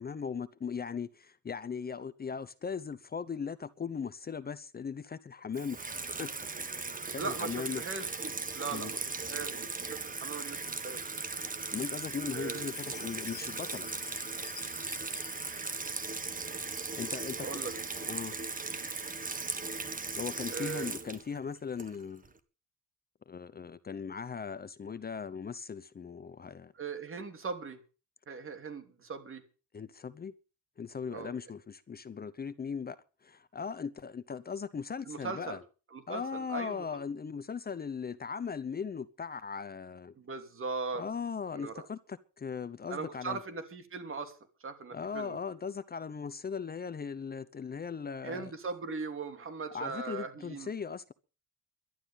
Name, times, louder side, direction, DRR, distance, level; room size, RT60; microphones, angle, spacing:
voice 1, 0.0-5.8 6.2-6.3 7.1-7.8 8.7-8.9 11.7-13.9 17.0-17.7 18.0-18.3 20.2-22.3 23.3-26.7 29.7-30.3 30.8-33.0 33.2-35.6 36.1-40.1 40.9-43.4 44.9-48.5 49.7-51.1, left 6 dB, 30° left, 0.8 m, -38 dB
Water tap faucet / Sink (filling or washing), 5.5-22.3, right 4 dB, 25° right, 1.7 m, -38 dB
voice 2, 7.2-11.1 12.3-12.7 17.4-17.7 20.5-20.9 26.7-27.8 28.3-29.4 31.1-31.3 35.1-35.6 35.9-36.8 40.2-41.0 41.5-41.9 42.9-45.4 48.2-50.7, right 4 dB, 45° right, 3.1 m, -39 dB
Chime, 12.6-16.6, left 12 dB, 75° left, 1.8 m, -49 dB
12.0 x 11.0 x 7.2 m
cardioid pair, 90°, 30 cm